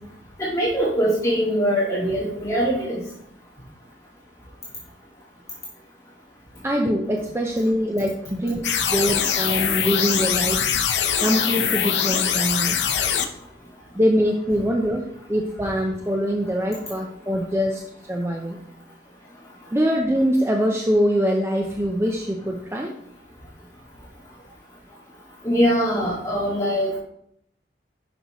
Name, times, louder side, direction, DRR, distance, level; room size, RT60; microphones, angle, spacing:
voice 1, 0.4-3.0 25.4-27.0, equal, 20° left, -7 dB, 1.9 m, -22 dB
voice 2, 6.6-10.6 11.2-12.8 14.0-15.0 15.3-17.8 18.1-18.6 19.7-22.9, equal, 15° right, 1 dB, 0.6 m, -23 dB
sound 1, 8.6-13.2, left 8 dB, 85° left, 0.7 m, -22 dB
9.3 x 6.0 x 3.0 m, 0.72 s
head